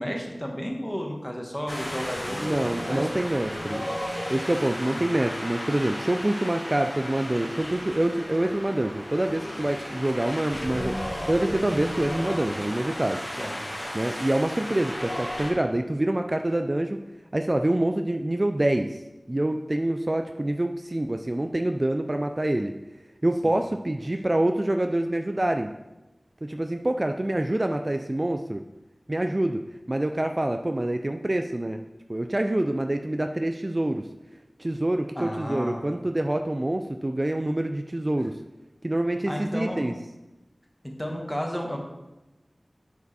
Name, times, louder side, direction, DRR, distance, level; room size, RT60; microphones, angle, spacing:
voice 1, 0.0-3.5 3.9-4.0 4.8-5.1 13.4-13.6 23.4-23.5 35.1-35.8 39.3-39.9 40.8-41.8, equal, 10° left, 1 dB, 1.4 m, -33 dB
Wind, 1.7-15.5, equal, 35° left, 2.1 m, -34 dB
voice 2, 2.4-3.9 4.3-13.2 13.9-17.0 17.3-19.0 19.3-22.7 23.2-25.7 26.4-28.6 29.1-31.8 32.1-34.1 34.6-38.4 38.8-39.9, right 1 dB, 35° right, 6 dB, 0.3 m, -26 dB
8.1 x 4.8 x 4.1 m, 1.0 s
wide cardioid pair, 55°, 0 cm